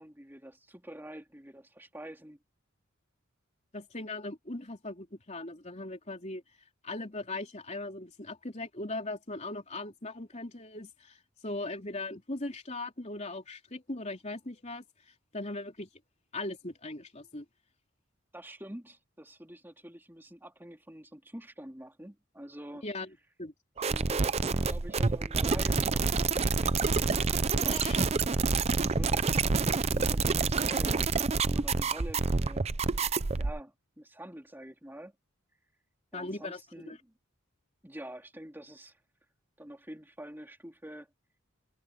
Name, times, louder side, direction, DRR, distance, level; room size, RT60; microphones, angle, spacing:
voice 1, 0.0-2.4 18.3-22.8 23.9-26.9 27.4-27.9 28.8-32.7 33.4-35.1 36.1-37.1 37.8-38.9 39.6-41.1, right 1 dB, 10° right, 3.1 m, -46 dB
voice 2, 3.7-6.4 6.8-15.9 16.3-17.4 22.8-23.1 23.4-23.5 27.7-28.1 36.1-37.0, left 2 dB, 35° left, 3.5 m, -39 dB
sound 1, 23.8-33.6, right 4 dB, 30° right, 0.6 m, -28 dB
head